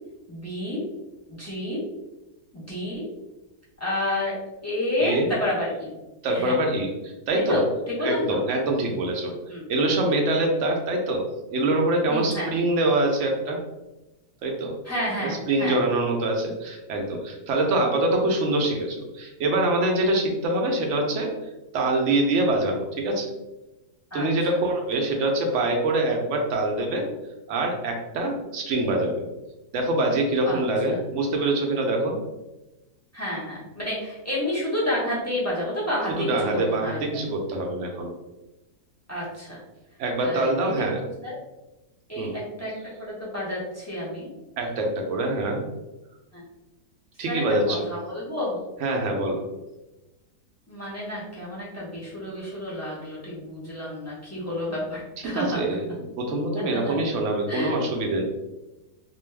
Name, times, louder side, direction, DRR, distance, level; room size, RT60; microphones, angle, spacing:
voice 1, 0.3-0.8 1.3-1.8 2.5-3.1 3.8-4.3 4.6-5.9 6.3-6.6 7.3-8.4 9.5-9.6 12.1-12.5 14.8-15.8 24.1-24.6 30.5-30.6 30.9-31.0 33.1-37.0 39.1-39.6 40.2-40.7 41.2-41.3 42.1-42.7 43.0-44.3 46.3-46.4 47.3-48.6 50.7-55.6 56.7-56.9 57.5-57.8, left 1 dB, 20° left, -7 dB, 0.4 m, -30 dB
voice 2, 5.0-5.3 6.2-7.6 8.0-9.3 9.7-11.2 11.5-13.6 14.4-14.7 15.2-21.3 21.7-23.3 24.1-27.1 27.5-29.2 29.7-32.2 36.1-38.1 40.0-41.0 42.2-42.3 44.6-45.6 47.2-47.8 48.8-49.4 55.2-55.9 56.2-58.2, right 2 dB, 65° right, 1 dB, 0.7 m, -24 dB
2.6 x 2.3 x 3.2 m, 1.0 s
omnidirectional pair, 1.7 m